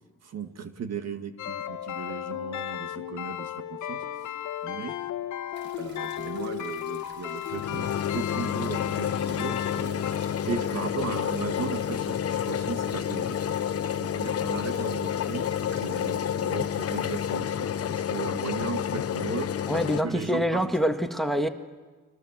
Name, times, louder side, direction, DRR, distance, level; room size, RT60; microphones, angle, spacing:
voice 1, 0.2-4.0 4.6-5.0 5.8-13.4 13.9-19.5 20.0-20.6, right 6 dB, 55° right, 2.0 m, -37 dB
sound 1, 1.4-10.1, left 11 dB, 75° left, 1.3 m, -34 dB
sound 2, 5.5-17.4, right 1 dB, 35° right, 5.9 m, -51 dB
sound 3, 7.5-20.0, left 9 dB, 50° left, 1.0 m, -29 dB
voice 2, 19.7-21.5, equal, ahead, 1.7 m, -26 dB
29.5 x 23.0 x 7.7 m
cardioid pair, 90°, 30 cm